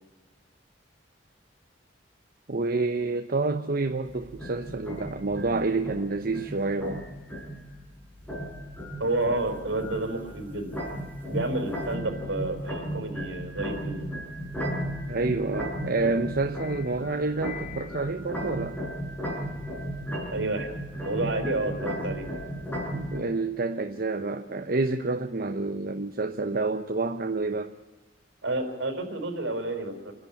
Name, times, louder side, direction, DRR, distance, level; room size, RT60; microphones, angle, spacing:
voice 1, 2.5-7.1 15.1-18.8 22.9-27.7, right 3 dB, 55° right, 6 dB, 1.0 m, -28 dB
sound 1, 4.0-23.2, equal, 10° left, 6.1 m, -35 dB
voice 2, 9.0-10.8 11.3-14.1 20.3-20.7 21.0-22.3 28.4-30.1, right 2 dB, 70° right, 5 dB, 4.6 m, -30 dB
27.5 x 11.5 x 8.5 m, 1.1 s
head